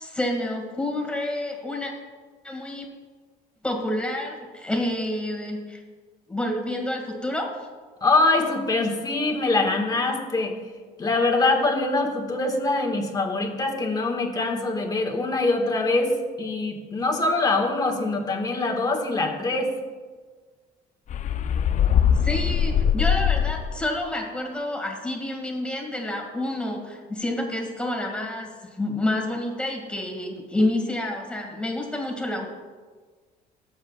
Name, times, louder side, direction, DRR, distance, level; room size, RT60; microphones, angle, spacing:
voice 1, 0.0-1.9 2.4-2.9 3.6-5.8 6.3-7.7 22.2-32.5, left 1 dB, 5° left, 0 dB, 2.1 m, -28 dB
voice 2, 8.0-10.6 11.0-19.7, left 2 dB, 25° left, 1 dB, 1.7 m, -24 dB
sound 1, 21.1-23.9, left 8 dB, 45° left, 0.5 m, -22 dB
19.0 x 7.5 x 2.4 m, 1.4 s
cardioid pair, 110°, 17 cm